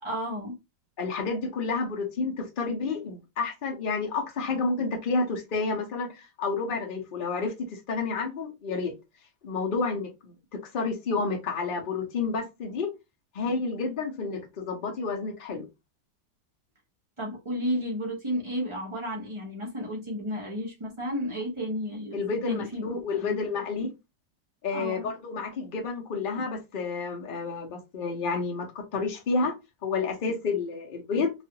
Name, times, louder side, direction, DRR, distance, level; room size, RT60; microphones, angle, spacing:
voice 1, 0.0-0.6 17.2-23.4 24.7-25.1, equal, 45° right, 0.4 m, -32 dB
voice 2, 1.0-8.9 9.4-12.9 13.3-15.7 22.1-23.9 24.6-31.3, left 4 dB, 65° left, 0.5 m, -30 dB
3.1 x 2.4 x 2.8 m
omnidirectional pair, 2.0 m